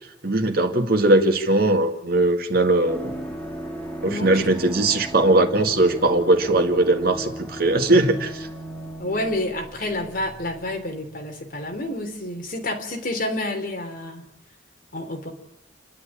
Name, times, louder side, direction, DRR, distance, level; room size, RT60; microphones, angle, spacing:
voice 1, 0.2-3.1 4.0-8.5, right 2 dB, 50° right, 5 dB, 2.2 m, -20 dB
sound 1, 2.8-11.4 11.6-11.7, right 1 dB, 5° left, 2.5 m, -36 dB
voice 2, 4.0-4.5 9.0-14.3 14.9-15.3, left 1 dB, 50° left, 3 dB, 3.5 m, -29 dB
29.5 x 11.5 x 8.7 m, 0.89 s
head